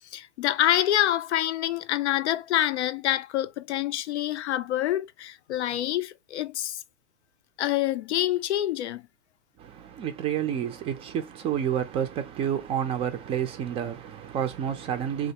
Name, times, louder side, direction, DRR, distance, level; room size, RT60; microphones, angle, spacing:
voice 1, 0.1-6.8 7.6-9.0, left 13 dB, 85° left, 0.5 m, -26 dB
voice 2, 9.6-15.3, right 9 dB, 20° right, 0.4 m, -29 dB
3.3 x 2.4 x 2.8 m
hypercardioid pair, 135°, 33 cm